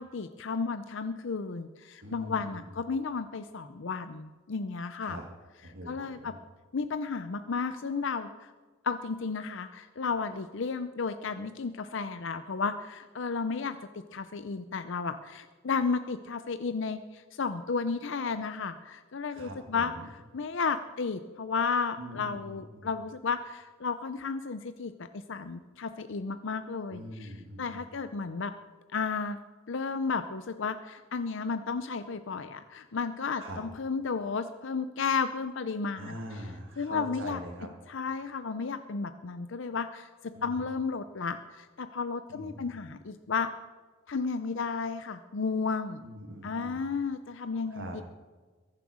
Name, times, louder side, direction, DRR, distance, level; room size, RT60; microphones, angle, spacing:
voice 1, 0.0-5.2 5.9-6.3 6.7-8.5 8.8-19.9 20.3-27.3 27.6-28.5 28.9-29.4 29.7-36.2 36.8-37.4 37.9-43.5 44.1-46.0 46.4-48.0, left 5 dB, 65° left, 10 dB, 0.6 m, -33 dB
voice 2, 2.0-2.6 5.0-5.2 5.6-6.4 19.3-20.1 22.0-22.9 26.9-27.9 33.4-33.6 35.9-37.7 40.3-40.6 42.3-42.9 46.0-46.8 47.7-48.0, equal, 65° right, 1 dB, 1.9 m, -43 dB
22.5 x 7.6 x 6.3 m, 1.4 s
head